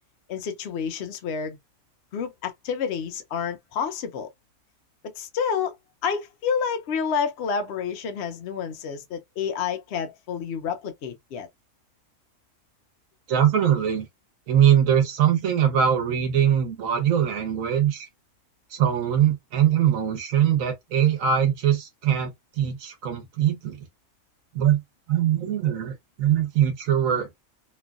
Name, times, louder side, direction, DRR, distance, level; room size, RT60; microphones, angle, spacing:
voice 1, 0.3-1.6 2.1-4.3 5.2-5.8 6.0-11.5, left 6 dB, 60° left, 0.8 m, -29 dB
voice 2, 13.3-14.1 14.5-18.1 18.7-23.8 24.5-24.8 25.1-27.4, right 9 dB, 85° right, 1.2 m, -22 dB
3.0 x 2.4 x 2.3 m
omnidirectional pair, 1.4 m